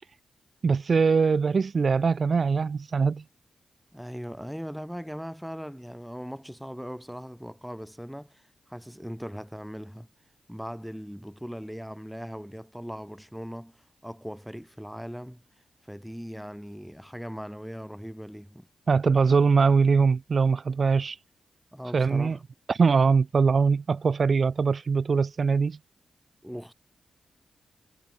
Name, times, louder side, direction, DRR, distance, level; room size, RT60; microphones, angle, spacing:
voice 1, 0.6-3.2 18.9-21.2 21.9-22.4 22.7-25.8, right 5 dB, 55° right, 0.7 m, -22 dB
voice 2, 3.9-8.4 8.7-10.1 10.5-15.4 15.9-18.7 21.7-22.4 26.4-26.7, equal, ahead, 1.6 m, -39 dB
supercardioid pair, 50°, 0 cm